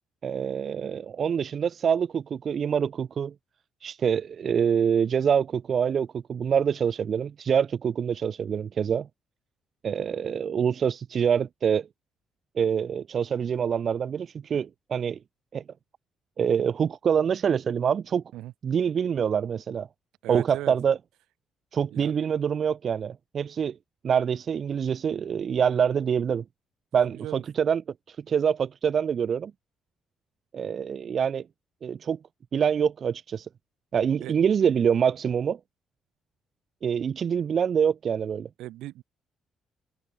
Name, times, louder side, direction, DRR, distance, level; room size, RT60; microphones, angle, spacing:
voice 1, 0.2-3.3 3.8-9.1 9.8-11.9 12.6-15.2 15.5-15.6 16.4-18.2 18.6-19.9 20.3-21.0 21.7-23.8 24.0-26.4 26.9-27.8 28.1-29.5 30.5-31.4 31.8-32.2 32.5-33.5 33.9-35.6 36.8-38.5, right 7 dB, 55° right, 0.4 m, -25 dB
voice 2, 20.2-20.7 21.9-22.1 27.0-27.4 34.2-34.3 38.6-39.0, right 15 dB, 80° right, 1.8 m, -37 dB
supercardioid pair, 70°, 0 cm